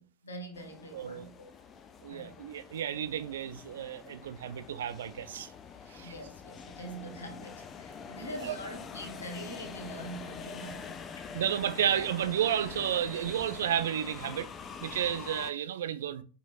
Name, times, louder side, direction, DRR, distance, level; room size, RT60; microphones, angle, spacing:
voice 1, 0.0-1.5 2.1-2.4 6.0-11.5, right 1 dB, 70° left, 0.9 m, -44 dB
sound 1, 0.5-15.5, left 6 dB, 25° left, 0.3 m, -45 dB
voice 2, 0.9-1.3 2.0-5.5 5.9-6.1 8.4-8.5 11.3-14.5 14.8-16.2, right 10 dB, 60° right, 0.3 m, -32 dB
4.3 x 2.8 x 2.4 m
figure-of-eight pair, 90°, 0 cm